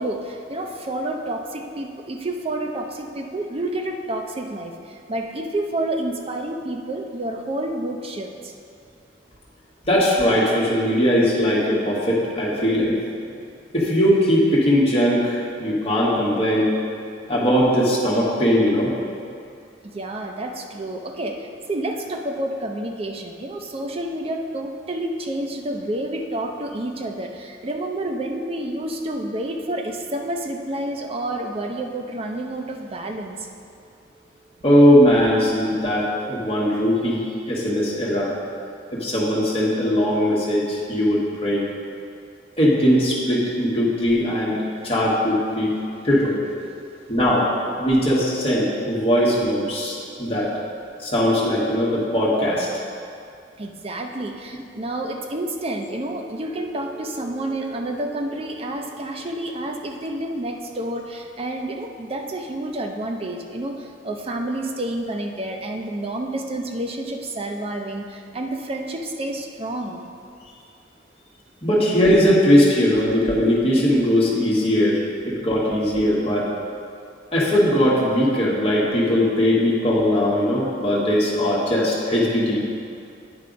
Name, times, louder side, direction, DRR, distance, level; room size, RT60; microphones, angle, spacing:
voice 1, 0.0-8.5 19.9-33.5 44.7-44.9 53.6-70.0 79.0-79.1, right 1 dB, 30° right, 3 dB, 0.5 m, -29 dB
voice 2, 9.9-13.0 13.7-16.7 17.3-18.9 34.6-38.3 38.9-41.6 42.6-44.6 44.8-45.7 46.0-46.4 47.1-47.5 47.8-50.5 51.0-52.7 71.6-75.0 75.2-76.5 77.3-82.6, equal, 30° left, -6 dB, 1.4 m, -19 dB
9.7 x 3.4 x 5.1 m, 2.4 s
head